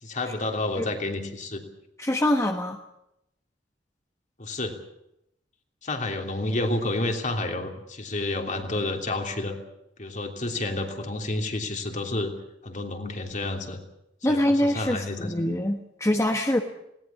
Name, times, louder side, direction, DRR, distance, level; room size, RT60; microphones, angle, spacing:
voice 1, 0.0-1.6 4.4-4.8 5.8-9.6 10.0-12.3 12.6-13.8 14.3-15.3, left 2 dB, 45° left, 4 dB, 3.1 m, -30 dB
voice 2, 2.0-2.8 14.2-16.6, left 1 dB, 15° left, 4 dB, 1.2 m, -24 dB
20.0 x 18.0 x 8.5 m, 0.81 s
head